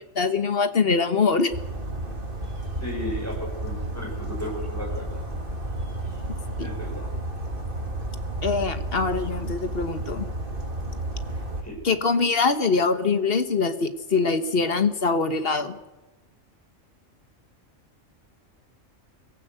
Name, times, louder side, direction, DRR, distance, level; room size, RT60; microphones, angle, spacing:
voice 1, 0.1-1.5 6.6-6.7 8.4-10.3 11.8-15.8, left 4 dB, 50° left, 9 dB, 1.4 m, -23 dB
Bird vocalization bird call bird song, 1.5-11.6, right 1 dB, 40° right, 3.2 m, -32 dB
voice 2, 2.8-5.1 6.6-7.1 11.3-11.8, equal, 10° left, 0 dB, 5.6 m, -35 dB
23.0 x 15.0 x 7.9 m, 1.1 s
omnidirectional pair, 1.3 m